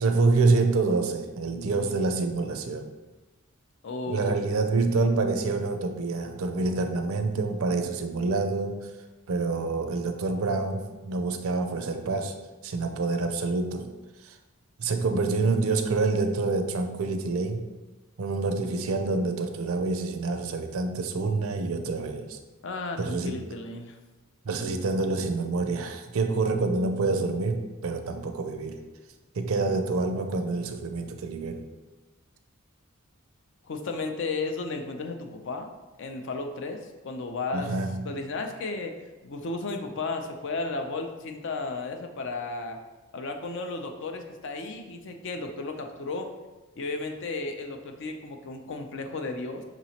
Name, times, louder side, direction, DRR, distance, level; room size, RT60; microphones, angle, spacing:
voice 1, 0.0-2.9 4.1-8.8 9.3-12.3 12.6-13.9 14.2-14.4 14.8-17.6 18.2-22.4 23.0-23.5 24.4-28.8 29.3-31.6 37.5-38.1, right 3 dB, 70° right, 6 dB, 0.4 m, -27 dB
voice 2, 3.8-4.5 22.6-24.0 33.6-35.7 36.0-37.8 38.0-38.9 39.2-42.8 43.1-46.3 46.8-49.6, left 3 dB, 60° left, 5 dB, 0.5 m, -34 dB
5.7 x 3.0 x 2.8 m, 1.2 s
head